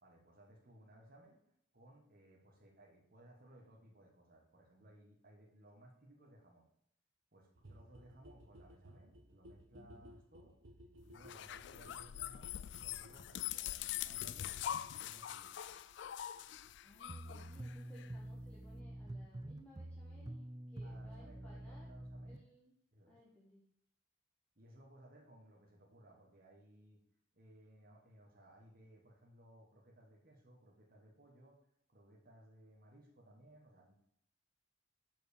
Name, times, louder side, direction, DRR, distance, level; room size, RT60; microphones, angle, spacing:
voice 1, 0.0-1.4 1.7-6.7 7.3-10.6 11.0-14.7 15.0-15.5 20.8-22.4 22.9-23.2 24.5-27.0 27.3-31.6 31.9-34.0, right 1 dB, 45° right, -2 dB, 1.6 m, -61 dB
sound 1, 7.5-19.1 19.3-19.4 19.6-19.7 19.9-20.0 20.2-20.3 20.5-20.6 20.8-20.9, equal, 75° right, 1.1 m, -61 dB
voice 2, 9.7-10.1 16.8-21.9 22.3-22.7 23.1-23.6, left 1 dB, 5° left, -6 dB, 1.4 m, -62 dB
sound 2, 11.1-18.1, left 11 dB, 55° left, 0.3 m, -43 dB
sound 3, 17.1-22.4, right 1 dB, 20° right, 0.4 m, -47 dB
7.6 x 5.2 x 6.7 m, 0.75 s
head